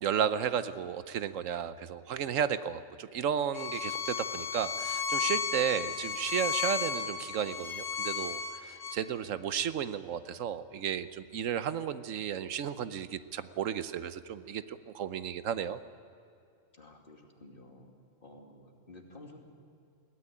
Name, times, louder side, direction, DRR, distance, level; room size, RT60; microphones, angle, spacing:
voice 1, 0.0-15.8, right 8 dB, 80° right, 13 dB, 1.1 m, -33 dB
Bowed string instrument, 3.5-9.0, left 7 dB, 80° left, 1.6 m, -34 dB
voice 2, 16.8-17.9 18.2-19.4, left 1 dB, 45° left, 1 dB, 2.8 m, -52 dB
21.0 x 17.0 x 10.0 m, 2.5 s
omnidirectional pair, 1.3 m